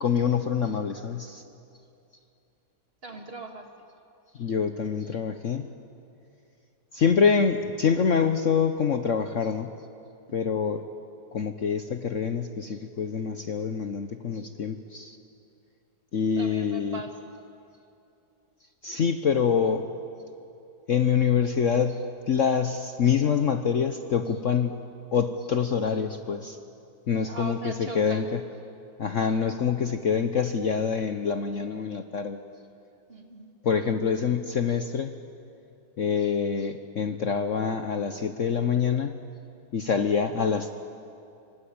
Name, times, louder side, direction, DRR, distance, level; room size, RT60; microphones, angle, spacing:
voice 1, 0.0-1.4 4.4-5.7 6.9-9.7 10.3-10.8 11.3-15.2 16.1-17.0 18.8-19.9 20.9-24.8 25.1-26.6 27.1-28.4 29.0-32.4 33.6-35.1 36.0-39.1 39.7-40.7, left 6 dB, 50° left, 8 dB, 1.1 m, -26 dB
voice 2, 3.0-3.7 10.3-10.4 16.4-17.4 27.1-28.3 33.1-33.5, right 3 dB, 35° right, 3 dB, 2.5 m, -40 dB
27.5 x 24.5 x 8.7 m, 2.6 s
omnidirectional pair, 1.9 m